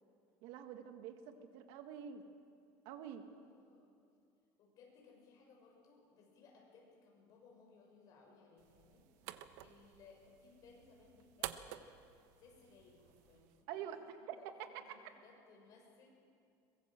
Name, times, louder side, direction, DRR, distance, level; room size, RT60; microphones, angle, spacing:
voice 1, 0.4-2.2 2.9-3.2 13.7-14.0 14.3-14.8, right 9 dB, 65° right, 7 dB, 1.9 m, -47 dB
voice 2, 3.3-4.0 4.6-11.9 12.4-13.9 14.1-16.1, left 4 dB, 40° left, 0 dB, 6.9 m, -63 dB
sound 1, 8.6-13.6, right 13 dB, 80° right, 1.1 m, -51 dB
23.0 x 21.5 x 7.7 m, 2.3 s
cardioid pair, 160°, 9 cm